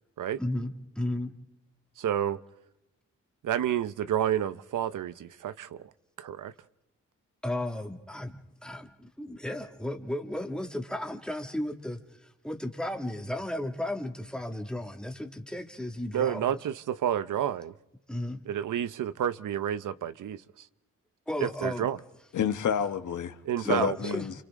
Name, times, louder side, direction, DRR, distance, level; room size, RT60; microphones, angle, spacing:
voice 1, 0.4-1.3 7.4-12.0 12.4-16.6 18.1-18.4 21.3-21.8 23.6-24.3, left 1 dB, 5° left, 2.1 m, -34 dB
voice 2, 2.0-2.4 3.4-5.9 6.2-6.5 16.1-17.7 18.5-20.7 21.4-22.0 23.4-24.0, right 10 dB, 80° right, 0.8 m, -30 dB
voice 3, 22.3-24.3, left 8 dB, 75° left, 1.4 m, -29 dB
29.0 x 28.0 x 3.7 m
wide cardioid pair, 115°, 31 cm